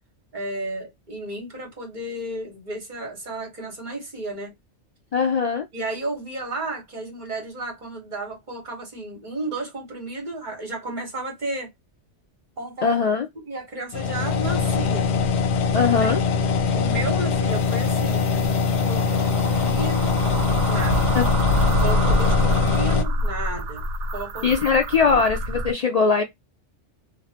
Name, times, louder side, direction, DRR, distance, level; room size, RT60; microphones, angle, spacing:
voice 1, 0.3-4.5 5.7-11.7 12.6-13.0 13.4-15.1 16.0-16.1 16.7-18.4 18.8-20.2 20.6-21.2 21.8-23.8 24.1-25.2, right 2 dB, 40° right, 1.3 m, -33 dB
voice 2, 5.1-5.7 12.8-13.3 15.7-16.2 21.1-21.3 24.4-26.2, left 5 dB, 90° left, 0.3 m, -20 dB
sound 1, 13.9-23.0, left 5 dB, 70° left, 0.8 m, -22 dB
sound 2, 17.6-25.7, equal, 80° right, 0.9 m, -26 dB
3.1 x 2.2 x 2.7 m
omnidirectional pair, 1.2 m